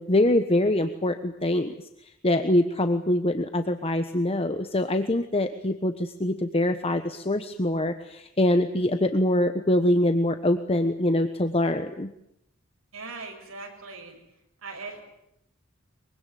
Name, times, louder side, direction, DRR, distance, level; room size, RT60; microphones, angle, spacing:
voice 1, 0.0-1.7 2.2-12.1, left 1 dB, 30° left, 8 dB, 1.2 m, -24 dB
voice 2, 12.9-14.2 14.6-15.0, right 3 dB, 80° right, 3 dB, 6.8 m, -39 dB
24.0 x 24.0 x 9.4 m, 0.78 s
head